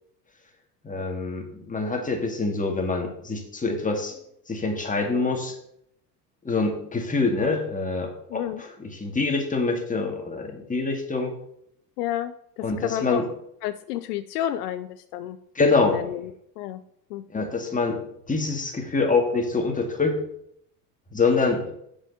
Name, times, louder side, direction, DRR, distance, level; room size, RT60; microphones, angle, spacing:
voice 1, 0.8-4.2 4.5-5.6 6.4-11.3 12.6-13.3 15.6-16.0 17.3-20.2 21.1-21.7, left 3 dB, 15° left, 3 dB, 2.1 m, -25 dB
voice 2, 8.3-8.6 12.0-13.3 13.6-15.4 15.7-16.3 16.6-16.8 17.1-17.4, left 12 dB, 70° left, 13 dB, 0.6 m, -31 dB
7.5 x 5.1 x 6.5 m, 0.73 s
hypercardioid pair, 80°, 48 cm